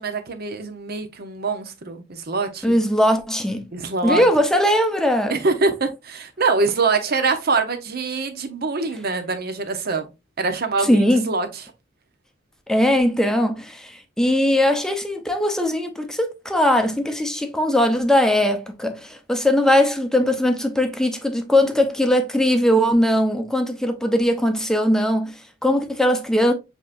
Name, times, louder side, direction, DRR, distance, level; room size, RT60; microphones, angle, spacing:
voice 1, 0.0-2.8 3.7-4.2 5.3-10.1 10.4-11.5, right 4 dB, 55° right, 0.9 m, -24 dB
voice 2, 2.6-3.7 4.0-5.3 10.8-11.3 12.7-26.5, left 1 dB, 5° left, 0.7 m, -20 dB
7.2 x 2.9 x 2.5 m
head